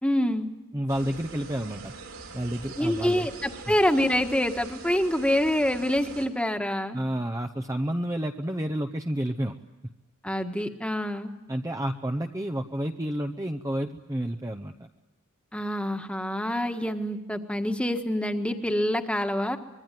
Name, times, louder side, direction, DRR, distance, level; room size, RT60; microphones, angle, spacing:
voice 1, 0.0-0.5 2.8-7.0 10.2-11.3 15.5-19.6, left 1 dB, 5° left, 6 dB, 1.6 m, -26 dB
voice 2, 0.7-1.9 2.3-3.3 3.7-3.8 6.9-9.6 11.5-14.7, right 1 dB, 15° right, 5 dB, 0.8 m, -30 dB
sound 1, 0.9-6.3, right 3 dB, 70° right, 4.3 m, -43 dB
25.0 x 22.5 x 9.2 m, 1.1 s
head